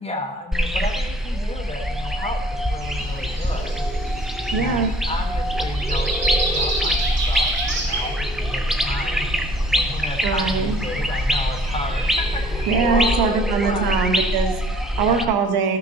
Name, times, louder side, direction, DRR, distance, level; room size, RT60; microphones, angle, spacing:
voice 1, 0.0-3.9 4.5-9.3 9.7-14.0 14.9-15.3, left 2 dB, 15° left, 1 dB, 1.5 m, -33 dB
sound 1, 0.5-15.2, equal, ahead, 0.7 m, -24 dB
Breathing, 2.8-12.8, right 2 dB, 40° right, 2.9 m, -31 dB
voice 2, 4.5-4.9 10.2-10.8 12.7-15.8, right 5 dB, 75° right, 5 dB, 1.3 m, -22 dB
13.5 x 6.1 x 2.9 m, 0.90 s
cardioid pair, 95°, 38 cm